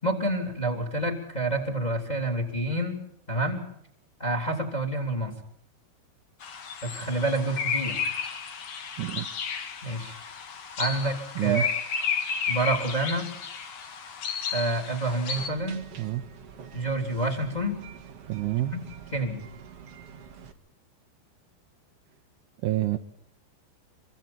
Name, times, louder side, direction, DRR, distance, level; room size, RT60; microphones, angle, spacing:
voice 1, 0.0-3.0 3.3-3.7 4.2-5.3 6.8-8.0 9.8-10.2 10.8-11.7 12.5-13.3 14.5-15.9 16.7-17.8 18.7-18.8 19.1-19.4, right 2 dB, 10° left, 3 dB, 3.3 m, -28 dB
sound 1, 6.4-15.5, left 6 dB, 50° left, 2.2 m, -32 dB
sound 2, 15.4-20.5, right 7 dB, 50° right, 1.8 m, -46 dB
voice 2, 18.3-18.7 22.6-23.0, right 16 dB, 70° right, 6 dB, 2.6 m, -27 dB
26.0 x 25.0 x 4.4 m, 0.71 s
omnidirectional pair, 5.1 m